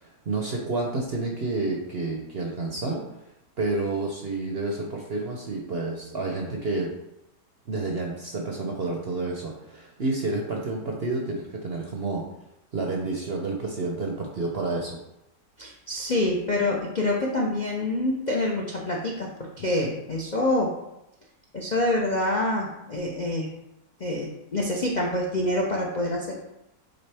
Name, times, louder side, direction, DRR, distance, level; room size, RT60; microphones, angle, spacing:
voice 1, 0.0-3.0 3.6-6.9 7.7-12.2 12.7-15.0, right 3 dB, 50° right, 0 dB, 0.8 m, -29 dB
voice 2, 15.6-20.7 21.5-23.5 24.0-26.4, left 1 dB, 45° left, -2 dB, 0.5 m, -26 dB
8.2 x 3.6 x 3.4 m, 0.88 s
omnidirectional pair, 1.8 m